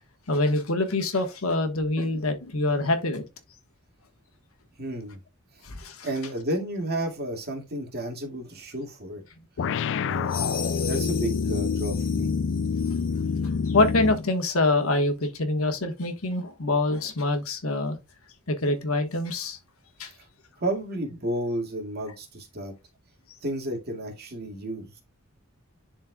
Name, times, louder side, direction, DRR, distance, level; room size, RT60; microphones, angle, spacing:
voice 1, 0.3-3.2 5.6-6.1 13.7-18.0 18.5-19.6 20.0-20.1, left 2 dB, 75° left, 1.4 m, -25 dB
voice 2, 4.8-5.2 6.0-9.2 9.6-9.7 10.0-10.3 10.7-12.3 20.6-22.7 23.4-25.0, right 1 dB, 50° right, 2.2 m, -32 dB
sound 1, 9.6-14.3, left 5 dB, 60° left, 0.4 m, -27 dB
sound 2, 10.3-13.3, left 8 dB, 45° left, 1.4 m, -38 dB
11.0 x 4.4 x 2.3 m
head